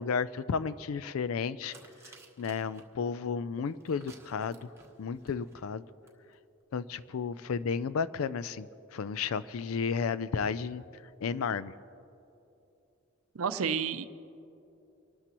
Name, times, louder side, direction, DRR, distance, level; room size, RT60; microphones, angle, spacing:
voice 1, 0.0-1.7 2.4-4.7 5.0-5.8 6.7-10.8 11.2-11.7, left 6 dB, 80° left, 16 dB, 0.4 m, -33 dB
sound 1, 1.7-2.8 3.7-5.6 6.1-6.2 6.3-6.4, right 3 dB, 15° right, 1.2 m, -55 dB
voice 2, 13.3-14.0, right 6 dB, 85° right, 11 dB, 0.6 m, -30 dB
26.0 x 13.0 x 3.0 m, 2.8 s
head